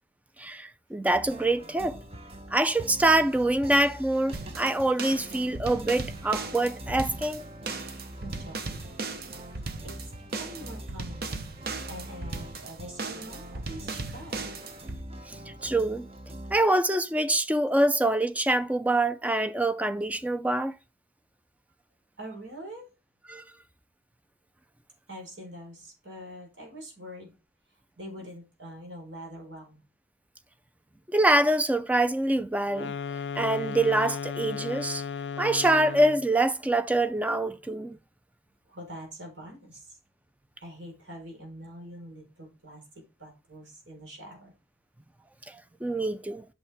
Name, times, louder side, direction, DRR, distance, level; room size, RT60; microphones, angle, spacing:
voice 1, 0.4-2.0 2.5-7.4 15.3-16.1 16.5-20.7 23.3-23.4 31.1-32.9 33.4-35.0 35.4-38.0 45.5-45.6 45.8-46.5, right 1 dB, 10° right, 0.4 m, -25 dB
sound 1, 1.1-16.6, right 1 dB, 30° right, 0.9 m, -44 dB
sound 2, 4.3-15.0, right 3 dB, 55° right, 0.9 m, -37 dB
voice 2, 8.1-9.0 9.8-14.5 22.2-22.9 25.1-27.3 28.0-29.8 38.6-40.0 40.6-44.5, equal, 80° right, 4.6 m, -44 dB
sound 3, 32.7-36.3, left 6 dB, 70° left, 0.4 m, -35 dB
8.5 x 6.4 x 3.5 m
head